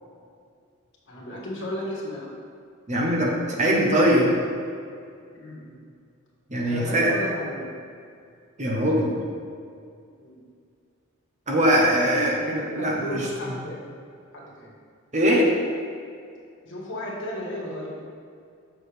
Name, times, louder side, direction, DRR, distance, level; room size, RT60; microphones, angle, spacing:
voice 1, 1.1-2.3 5.3-5.8 6.6-7.7 10.2-10.4 12.3-13.8 14.3-14.7 16.6-17.9, equal, 60° left, -4 dB, 1.5 m, -34 dB
voice 2, 2.9-4.3 6.5-7.1 8.6-9.2 11.5-13.2 15.1-15.5, equal, 35° right, -2 dB, 1.0 m, -21 dB
6.6 x 6.0 x 3.4 m, 2.3 s
head